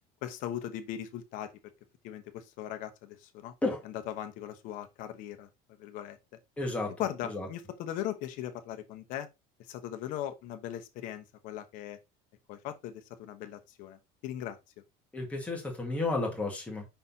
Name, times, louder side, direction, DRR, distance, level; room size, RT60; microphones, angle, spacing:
voice 1, 0.2-1.5 2.0-3.5 3.8-5.5 5.8-6.2 7.0-9.3 9.7-12.0 12.5-14.6, left 11 dB, 55° left, 1.0 m, -39 dB
voice 2, 6.6-6.9 7.2-7.5 15.1-16.8, left 2 dB, 10° left, 1.9 m, -32 dB
5.7 x 4.1 x 4.0 m
cardioid pair, 170°, 17 cm